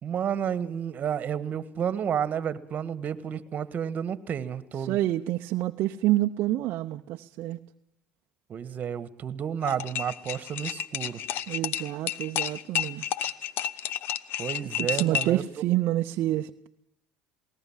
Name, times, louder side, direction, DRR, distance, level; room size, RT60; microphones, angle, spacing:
voice 1, 0.0-5.0 8.5-11.2 14.4-15.4, right 8 dB, 45° right, 15 dB, 1.6 m, -31 dB
voice 2, 4.8-7.6 11.5-13.0 14.8-16.7, right 15 dB, 65° right, 5 dB, 0.7 m, -28 dB
sound 1, 9.6-15.4, left 10 dB, 65° left, 1.0 m, -31 dB
20.5 x 18.5 x 7.4 m, 0.81 s
supercardioid pair, 90°, 4 cm